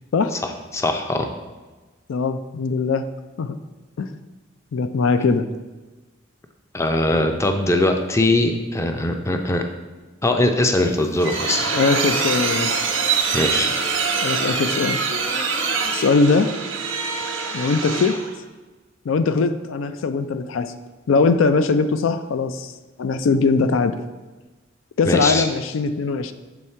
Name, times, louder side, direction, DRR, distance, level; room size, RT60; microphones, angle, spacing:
voice 1, 0.4-1.3 6.7-9.6 10.2-11.8 13.3-13.7 25.0-25.4, left 2 dB, 15° left, 5 dB, 0.4 m, -21 dB
voice 2, 2.1-3.0 3.4-3.6 4.0-4.1 4.7-5.5 11.7-12.8 14.2-15.0 15.9-16.5 17.5-18.2 19.1-20.7 21.1-22.7 23.0-24.0 25.0-26.3, left 4 dB, 85° left, 11 dB, 0.4 m, -20 dB
sound 1, 10.8-18.3, right 5 dB, 90° right, 1.0 m, -24 dB
7.1 x 3.6 x 4.3 m, 1.2 s
head